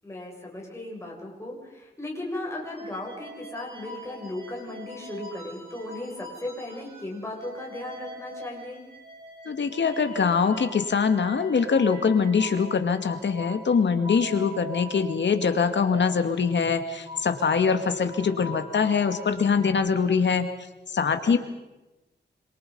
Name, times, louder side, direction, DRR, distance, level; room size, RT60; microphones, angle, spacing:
voice 1, 0.0-8.8 21.3-21.4, left 1 dB, 15° left, -2 dB, 7.7 m, -36 dB
sound 1, 2.7-7.1 7.4-19.7, equal, 30° right, 7.6 m, -42 dB
voice 2, 9.5-20.5 20.9-21.4, left 5 dB, 75° left, 8 dB, 2.3 m, -23 dB
27.0 x 27.0 x 5.6 m, 1.0 s
wide cardioid pair, 135°, 19 cm